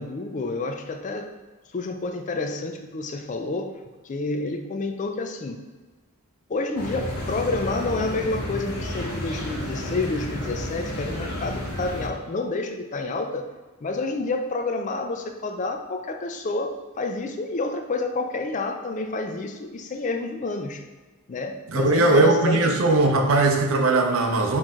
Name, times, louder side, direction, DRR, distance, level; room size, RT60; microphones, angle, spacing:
voice 1, 0.0-1.3 1.7-3.7 4.0-5.6 6.5-13.5 13.8-20.8 21.3-22.8, left 3 dB, 35° left, 6 dB, 0.4 m, -29 dB
sound 1, 6.8-12.1, left 1 dB, 85° left, 1.2 m, -31 dB
voice 2, 21.7-24.6, right 2 dB, 70° right, 3 dB, 0.6 m, -19 dB
4.3 x 3.1 x 3.6 m, 1.3 s
head